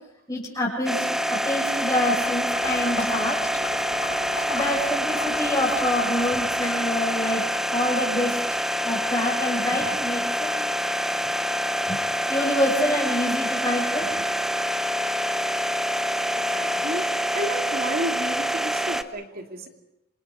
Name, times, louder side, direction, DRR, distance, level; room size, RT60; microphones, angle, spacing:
voice 1, 0.3-3.4 4.4-8.4 8.8-10.5 11.9-12.0 12.3-14.1, left 1 dB, 20° left, -7 dB, 6.6 m, -26 dB
sound 1, 0.9-19.0, equal, ahead, 0.9 m, -26 dB
Water / Liquid, 1.7-6.5, left 3 dB, 65° left, 7.2 m, -36 dB
voice 2, 16.3-19.7, right 1 dB, 50° right, 3 dB, 2.9 m, -32 dB
28.0 x 26.5 x 5.2 m, 0.87 s
head